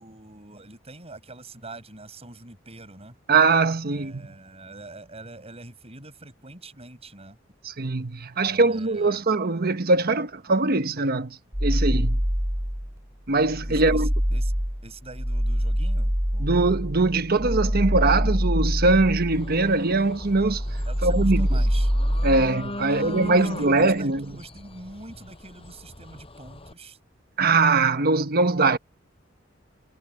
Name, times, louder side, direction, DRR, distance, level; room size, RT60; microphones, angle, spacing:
voice 1, 0.0-3.2 3.9-7.4 8.3-9.3 13.7-14.5 14.8-16.7 20.9-21.9 22.8-27.0, right 2 dB, 30° right, 8.0 m, -44 dB
voice 2, 3.3-4.2 7.6-12.2 13.3-14.1 16.4-20.6 21.0-21.6 22.2-24.3 27.4-28.8, right 3 dB, 50° right, 1.2 m, -22 dB
sound 1, 11.5-13.0 13.4-19.9 20.2-22.5, equal, 15° right, 2.5 m, -25 dB
sound 2, 19.3-26.7, left 1 dB, 30° left, 6.6 m, -39 dB
head